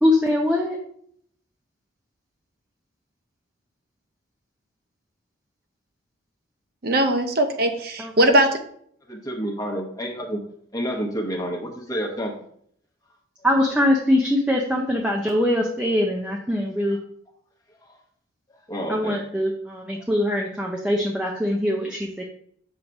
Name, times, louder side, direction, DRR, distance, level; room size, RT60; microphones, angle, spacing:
voice 1, 0.0-0.8 8.0-8.1 13.4-17.0 18.9-22.2, left 1 dB, 5° right, -1 dB, 0.6 m, -22 dB
voice 2, 6.8-8.6, right 1 dB, 50° right, 6 dB, 0.7 m, -20 dB
voice 3, 9.1-10.4 10.7-12.3 18.7-19.2 20.0-20.1, equal, 15° left, -1 dB, 1.1 m, -29 dB
7.2 x 3.2 x 5.2 m, 0.65 s
head